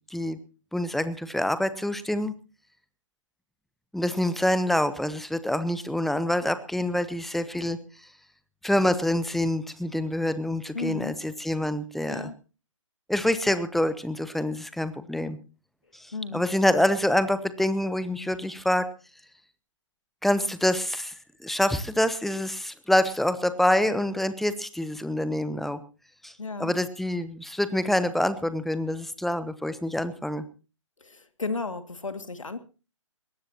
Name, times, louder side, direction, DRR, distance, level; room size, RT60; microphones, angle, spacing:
voice 1, 0.7-2.3 3.9-7.8 8.6-12.3 13.1-15.4 15.9-18.9 20.2-21.1 21.4-25.8 26.2-26.3 26.6-30.4, left 1 dB, ahead, 13 dB, 0.9 m, -26 dB
voice 2, 10.7-11.2 12.1-12.4 16.1-16.4 26.4-26.7 31.0-32.6, left 4 dB, 80° left, 10 dB, 2.4 m, -34 dB
21.0 x 18.0 x 2.9 m, 0.33 s
figure-of-eight pair, 135°, 16 cm